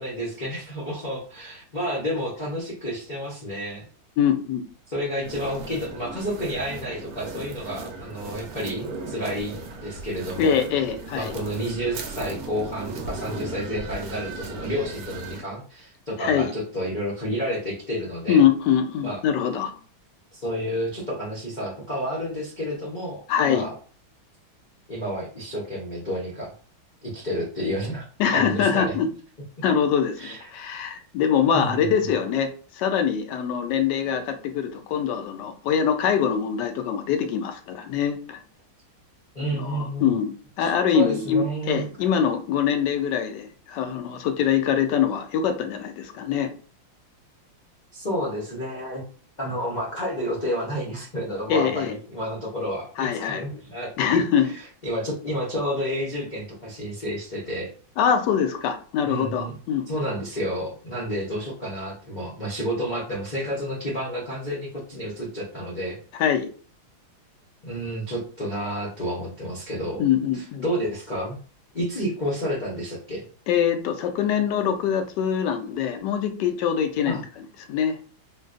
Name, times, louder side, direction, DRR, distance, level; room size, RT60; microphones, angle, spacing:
voice 1, 0.0-3.8 4.9-10.6 11.1-18.4 19.0-19.2 20.3-23.7 24.9-26.5 27.0-28.0 28.3-29.0 30.2-30.6 31.5-31.9 39.3-40.2 40.6-41.9 47.9-49.0 49.4-57.7 59.0-59.5 59.9-66.0 67.6-70.0 70.3-71.4 71.7-73.2 77.1-77.2, equal, 90° left, -6 dB, 0.4 m, -30 dB
voice 2, 4.2-4.7 10.4-11.3 16.2-16.5 18.3-19.7 23.3-23.7 28.2-29.1 29.6-38.4 39.5-46.5 51.5-51.9 53.0-53.4 54.0-54.5 58.0-59.9 66.2-66.5 70.0-70.7 73.5-78.0, left 8 dB, 75° left, 6 dB, 1.0 m, -23 dB
sound 1, 5.2-15.4, right 3 dB, 70° right, 0.9 m, -37 dB
3.8 x 2.2 x 2.4 m, 0.41 s
omnidirectional pair, 2.2 m